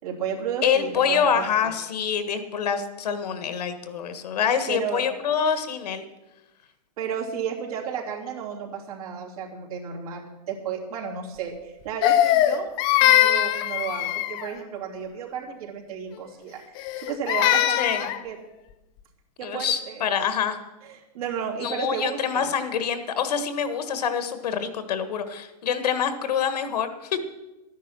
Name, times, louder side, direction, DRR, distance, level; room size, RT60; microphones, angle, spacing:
voice 1, 0.0-1.7 4.7-5.0 7.0-16.6 17.0-17.9 18.2-18.4 19.4-20.1 20.8-22.5, right 7 dB, 60° right, -1 dB, 3.2 m, -33 dB
voice 2, 0.6-6.0 17.8-18.1 19.4-20.6 21.6-27.2, left 7 dB, 70° left, 10 dB, 1.6 m, -26 dB
Crying sobbing, 12.0-14.5 16.8-18.2, left 13 dB, 20° left, 0.5 m, -21 dB
13.0 x 10.0 x 6.1 m, 1.0 s
hypercardioid pair, 160°, 21 cm